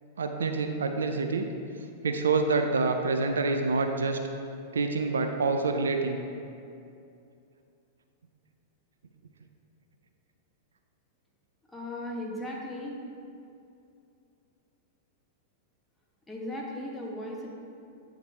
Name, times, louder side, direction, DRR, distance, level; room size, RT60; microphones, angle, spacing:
voice 1, 0.2-1.5 2.0-4.2 4.7-6.2, right 3 dB, 75° right, 5 dB, 0.5 m, -27 dB
voice 2, 11.7-13.0 16.3-17.5, left 1 dB, 10° left, -2 dB, 1.2 m, -36 dB
8.6 x 3.9 x 4.3 m, 2.6 s
figure-of-eight pair, 100°, 0 cm